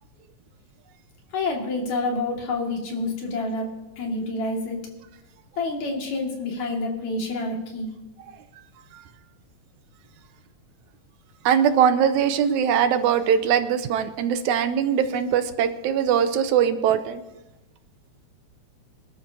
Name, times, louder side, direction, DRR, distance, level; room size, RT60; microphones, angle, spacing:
voice 1, 1.3-4.8 5.6-7.9, left 2 dB, 70° left, 0 dB, 3.4 m, -28 dB
voice 2, 11.5-17.2, right 8 dB, 85° right, 10 dB, 2.2 m, -21 dB
26.0 x 12.0 x 2.8 m, 1.0 s
omnidirectional pair, 3.4 m